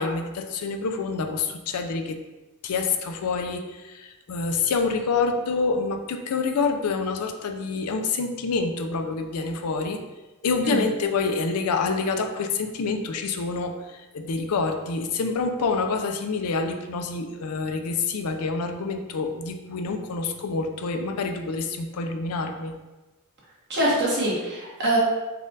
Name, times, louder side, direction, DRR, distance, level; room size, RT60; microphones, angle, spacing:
voice 1, 0.0-2.2 2.6-10.0 10.4-22.7, left 4 dB, 85° left, 5 dB, 0.5 m, -27 dB
voice 2, 23.7-25.0, right 1 dB, 50° right, -6 dB, 1.4 m, -24 dB
4.1 x 2.4 x 3.8 m, 1.1 s
head